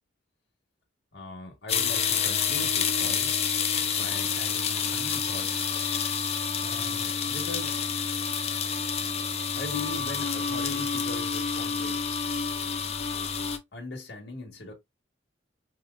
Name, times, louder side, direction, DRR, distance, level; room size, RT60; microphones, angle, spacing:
voice 1, 1.1-3.3 4.0-5.7 6.6-7.8 9.5-12.1 13.7-14.7, left 2 dB, 60° left, 1.4 m, -40 dB
sound 1, 1.7-13.6, left 6 dB, 35° left, 0.5 m, -28 dB
4.9 x 2.8 x 2.4 m
head